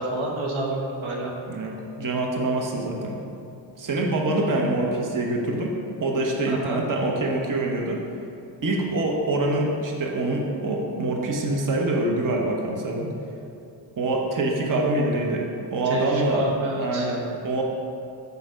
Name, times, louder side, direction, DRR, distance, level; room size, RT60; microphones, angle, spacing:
voice 1, 0.0-1.3 6.5-6.8 15.9-17.1, right 2 dB, 75° right, -1 dB, 1.1 m, -28 dB
voice 2, 1.5-3.2 3.8-5.7 6.0-8.0 8.6-13.1 14.0-16.5 16.8-17.6, right 2 dB, 40° right, 0 dB, 1.0 m, -25 dB
7.0 x 4.0 x 5.0 m, 2.7 s
cardioid pair, 55°, 48 cm